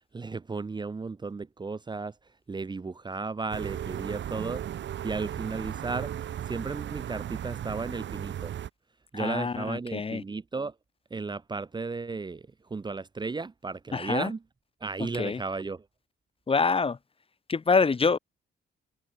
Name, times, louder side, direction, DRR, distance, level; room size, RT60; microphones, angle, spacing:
voice 1, 0.1-2.1 2.5-4.6 5.0-6.1 6.5-8.5 9.1-10.7 11.1-12.4 12.7-14.4 14.8-15.9, right 4 dB, 20° right, 0.8 m, -34 dB
sound 1, 3.5-8.7, right 10 dB, 65° right, 2.4 m, -36 dB
voice 2, 9.1-10.2 13.9-14.3 15.2-15.4 16.5-17.0 17.5-18.2, left 4 dB, 30° left, 1.2 m, -25 dB
cardioid pair, 90°, 20 cm